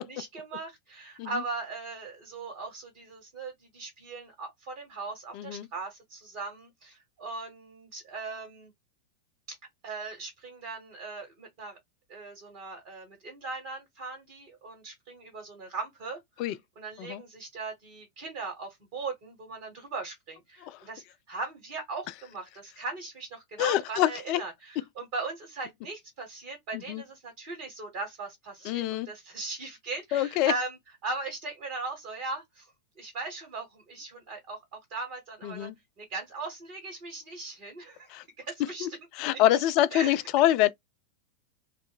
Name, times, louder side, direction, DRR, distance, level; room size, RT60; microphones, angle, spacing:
voice 1, 0.0-8.7 9.5-9.6 9.8-11.8 12.1-16.5 16.7-32.7 33.0-35.7 36.0-38.1 38.4-38.9 39.3-39.4 39.9-40.4, right 3 dB, 45° right, 1.3 m, -39 dB
voice 2, 5.3-5.7 16.4-16.5 17.0-17.2 20.6-20.8 23.6-24.4 26.9-27.0 28.6-29.1 30.1-30.5 35.4-35.7 38.1-38.2 38.8-38.9 39.2-40.7, left 13 dB, 45° left, 0.3 m, -25 dB
2.3 x 2.1 x 3.3 m
figure-of-eight pair, 90°, 0 cm